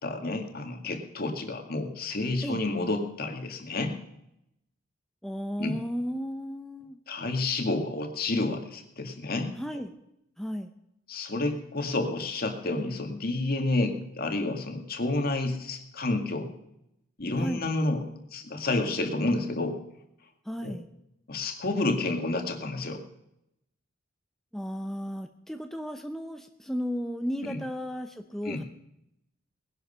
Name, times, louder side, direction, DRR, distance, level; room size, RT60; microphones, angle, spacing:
voice 1, 0.0-4.0 5.6-5.8 7.1-9.5 11.1-16.5 17.2-18.0 18.3-19.8 20.6-20.7 21.3-23.0 27.4-27.6 28.4-28.6, left 2 dB, 50° left, 4 dB, 1.9 m, -30 dB
voice 2, 5.2-7.0 9.5-9.9 10.4-10.7 17.4-17.6 20.5-20.9 24.5-28.6, equal, ahead, 5 dB, 0.6 m, -34 dB
19.5 x 11.0 x 5.6 m, 0.83 s
head